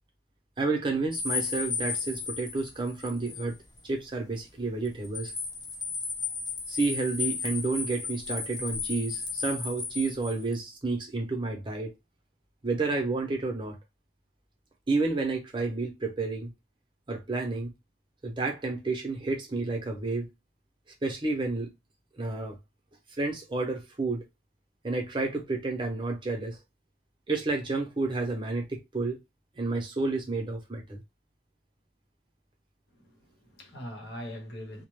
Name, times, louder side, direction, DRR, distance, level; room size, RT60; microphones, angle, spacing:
voice 1, 0.6-3.5 3.8-5.3 6.7-11.9 12.6-13.8 14.9-16.5 17.1-17.7 18.2-20.3 21.0-21.7 22.2-22.6 23.2-24.2 24.8-26.6 27.3-29.2 29.6-31.0, right 3 dB, 30° right, 0.6 m, -30 dB
sound 1, 1.1-3.5 3.8-3.9 4.8-10.5, left 5 dB, 25° left, 0.5 m, -34 dB
voice 2, 32.9-34.9, equal, 75° left, 0.9 m, -42 dB
2.2 x 2.1 x 3.1 m
head